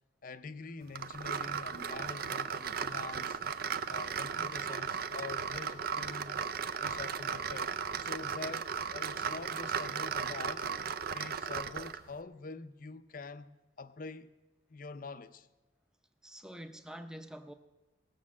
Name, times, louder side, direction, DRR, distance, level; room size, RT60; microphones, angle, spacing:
voice 1, 0.2-3.4 3.9-6.5 6.8-10.7 11.1-13.5 13.8-14.3 14.7-15.5, left 3 dB, 45° left, 0.6 m, -45 dB
sound 1, 0.9-12.1, right 6 dB, 50° right, 0.5 m, -36 dB
voice 2, 16.2-17.5, equal, 5° right, 0.7 m, -46 dB
18.0 x 6.9 x 7.3 m
head